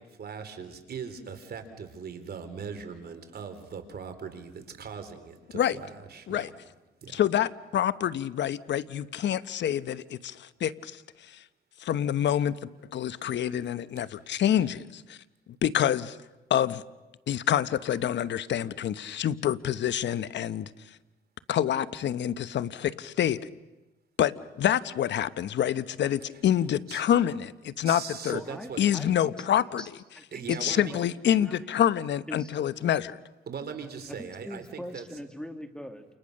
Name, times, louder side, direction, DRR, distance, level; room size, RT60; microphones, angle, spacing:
voice 1, 0.2-6.5 7.0-7.2 26.9-27.0 27.8-28.8 30.3-30.9 33.5-35.0, right 6 dB, 55° right, 8 dB, 3.8 m, -40 dB
voice 2, 7.1-11.0 11.3-11.4 11.8-12.6 12.9-15.2 15.6-16.2 16.5-16.8 17.3-20.7 21.5-23.4 24.2-28.4 28.8-29.8 30.5-33.2, left 10 dB, 65° left, 15 dB, 1.0 m, -27 dB
voice 3, 28.3-29.3 29.6-29.9 30.2-31.0 31.4-31.7 32.3-32.5 34.2-36.1, equal, 5° left, 6 dB, 2.6 m, -42 dB
29.5 x 28.5 x 6.6 m, 1.1 s
cardioid pair, 90°, 20 cm